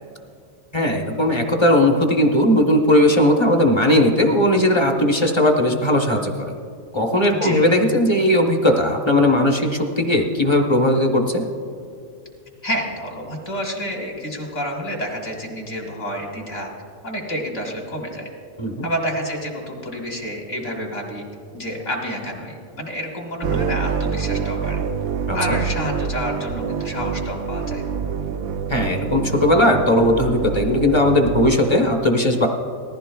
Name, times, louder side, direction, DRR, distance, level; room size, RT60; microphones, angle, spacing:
voice 1, 0.7-6.5 6.9-11.4 18.6-18.9 25.3-25.6 28.7-32.5, left 1 dB, 25° left, 2 dB, 0.8 m, -18 dB
voice 2, 7.3-7.7 12.6-16.7 17.0-18.3 18.8-21.2 21.5-24.8 25.3-27.8, equal, 60° left, -1 dB, 2.6 m, -29 dB
sound 1, 23.4-31.6, right 6 dB, 85° right, 1.0 m, -26 dB
19.5 x 14.5 x 2.3 m, 2.3 s
omnidirectional pair, 1.4 m